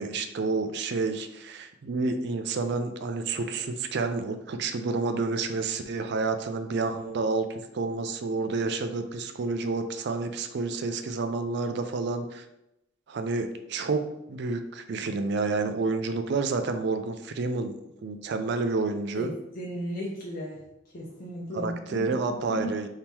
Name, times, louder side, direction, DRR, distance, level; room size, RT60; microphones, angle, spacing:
voice 1, 0.0-12.4 13.1-14.0 14.3-17.7 18.0-19.3 21.5-22.9, right 3 dB, 60° right, 8 dB, 0.4 m, -29 dB
voice 2, 19.2-20.6 20.9-22.7, equal, 45° left, -4 dB, 0.7 m, -35 dB
3.6 x 2.8 x 4.3 m, 0.85 s
head